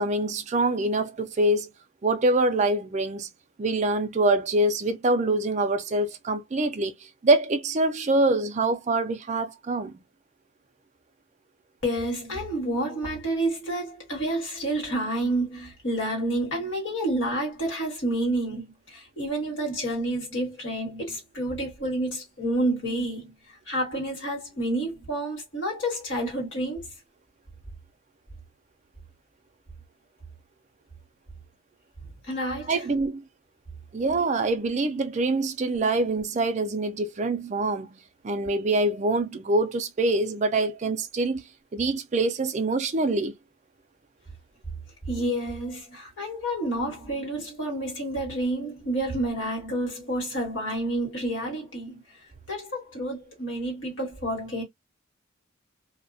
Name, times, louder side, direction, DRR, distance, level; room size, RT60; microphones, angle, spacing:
voice 1, 0.0-1.7 2.0-3.3 3.6-6.9 7.2-9.9 32.7-33.2 33.9-38.0 38.2-41.4 41.7-43.3, right 2 dB, 35° right, 0.3 m, -25 dB
voice 2, 11.8-23.3 23.7-26.9 32.2-32.8 45.1-52.0 52.5-54.6, right 1 dB, 60° left, 1.4 m, -29 dB
2.3 x 2.1 x 2.5 m
head